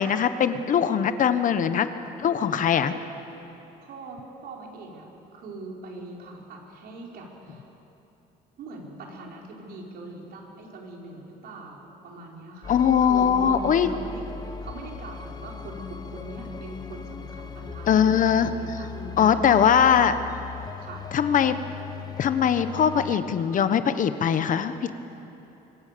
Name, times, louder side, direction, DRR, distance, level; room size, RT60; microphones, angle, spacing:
voice 1, 0.0-1.9 2.2-2.9 12.7-13.9 17.9-18.5 19.2-20.2 21.1-21.6 22.2-24.9, left 8 dB, 50° left, 11 dB, 1.1 m, -21 dB
voice 2, 3.8-5.1 5.3-7.7 8.6-12.8 13.1-14.2 14.6-19.6 20.8-21.1, right 2 dB, 65° right, -1 dB, 4.9 m, -41 dB
sound 1, 12.6-23.2, left 6 dB, 25° left, 1.3 m, -38 dB
25.0 x 23.5 x 6.9 m, 3.0 s
cardioid pair, 110°, 17 cm